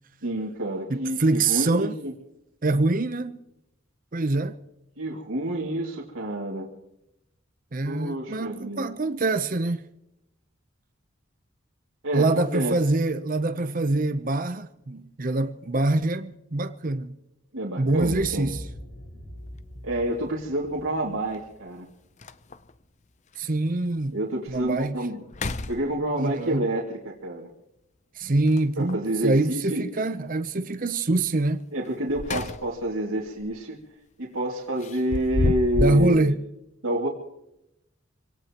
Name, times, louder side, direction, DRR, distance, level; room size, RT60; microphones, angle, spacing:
voice 1, 0.2-2.1 5.0-6.7 7.8-8.9 12.0-12.7 17.5-18.5 19.8-21.9 24.1-25.2 25.7-27.5 28.8-29.8 31.7-33.8 34.2-36.3 36.8-37.1, right 1 dB, 85° right, 2.5 m, -28 dB
voice 2, 0.9-2.0 2.6-3.4 4.1-4.6 7.7-9.8 12.1-17.2 17.8-18.7 23.4-24.1 24.5-25.0 26.2-26.7 28.2-31.6 35.8-36.4, right 2 dB, 40° right, 0.7 m, -25 dB
sound 1, 17.8-22.6, equal, 70° left, 6.4 m, -42 dB
sound 2, 19.5-19.6 21.3-21.4 21.8-21.9 22.2-22.8 23.3-23.4 24.0-24.1 24.5-24.8 25.2-26.3 28.4-29.1 31.8-32.9 33.3-33.5 34.8-36.1, left 2 dB, 35° left, 0.6 m, -30 dB
26.5 x 18.0 x 3.0 m
head